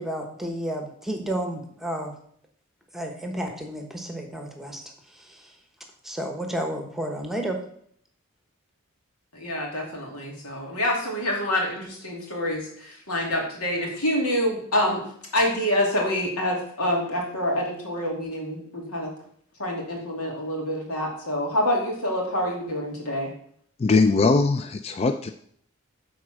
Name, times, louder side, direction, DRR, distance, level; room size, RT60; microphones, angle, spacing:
voice 1, 0.0-2.1 2.9-4.8 6.0-7.6, right 1 dB, ahead, 3 dB, 1.0 m, -31 dB
voice 2, 9.3-15.0 15.3-19.1 19.6-23.3, left 1 dB, 90° left, -1 dB, 2.6 m, -26 dB
voice 3, 23.8-25.3, left 3 dB, 25° left, 8 dB, 0.3 m, -20 dB
9.3 x 4.2 x 6.3 m, 0.65 s
head